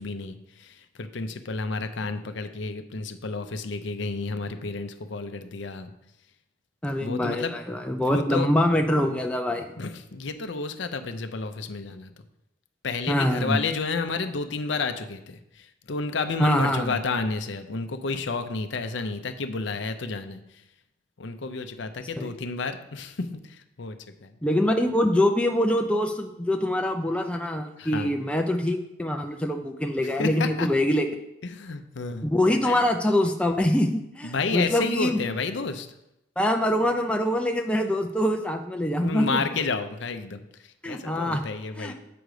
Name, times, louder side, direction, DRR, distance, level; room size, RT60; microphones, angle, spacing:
voice 1, 0.0-5.9 7.0-7.6 7.9-8.5 9.8-12.1 12.8-20.6 21.2-24.3 27.8-28.1 30.0-30.7 31.4-32.3 32.6-32.8 34.2-35.9 39.0-41.9, left 4 dB, 60° left, 8 dB, 0.6 m, -31 dB
voice 2, 6.8-9.7 13.1-13.6 16.4-16.9 22.2-22.3 24.4-31.1 32.3-35.2 36.4-39.4 40.8-41.4 41.8-41.9, left 1 dB, 5° left, 3 dB, 0.4 m, -24 dB
7.7 x 5.1 x 4.8 m, 0.86 s
head